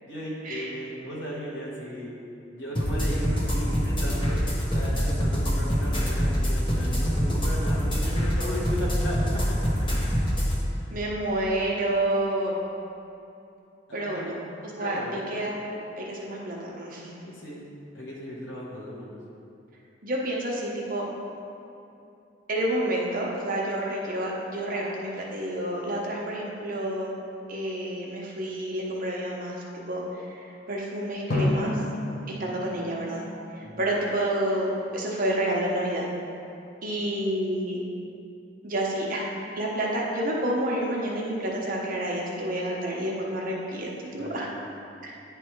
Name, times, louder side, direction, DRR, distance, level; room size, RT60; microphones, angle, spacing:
voice 1, 0.0-2.1 2.5-4.4 4.6-9.2 9.5-9.7 10.7-10.9 13.9-14.3 14.8-15.2 17.2-17.7 17.9-19.2 32.4-32.7 33.6-33.9 44.2-44.5, equal, 80° left, -6 dB, 1.2 m, -36 dB
sound 1, 2.7-10.5, equal, 25° left, 1.0 m, -25 dB
voice 2, 10.9-12.6 13.9-17.1 20.0-21.1 22.5-27.1 27.5-31.8 32.4-33.2 33.5-36.0 36.8-37.8 38.6-44.5 45.0-45.1, right 1 dB, 50° right, -3 dB, 1.0 m, -29 dB
Drum, 31.3-34.2, left 1 dB, 60° left, 0.9 m, -31 dB
9.3 x 3.4 x 4.5 m, 2.7 s
head